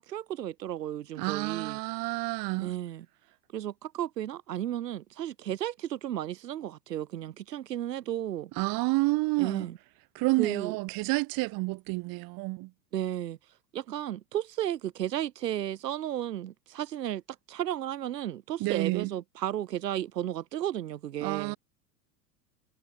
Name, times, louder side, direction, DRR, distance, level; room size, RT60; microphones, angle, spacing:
voice 1, 0.0-1.8 2.6-3.1 3.5-8.5 9.4-9.8 10.4-10.8 12.9-13.4 13.7-17.2 17.5-21.6, right 12 dB, 75° right, 1.9 m, -33 dB
voice 2, 1.2-2.8 8.6-9.7 10.1-12.7 18.6-19.1 21.2-21.6, right 24 dB, 45° right, 1.7 m, -29 dB
figure-of-eight pair, 85°, 49 cm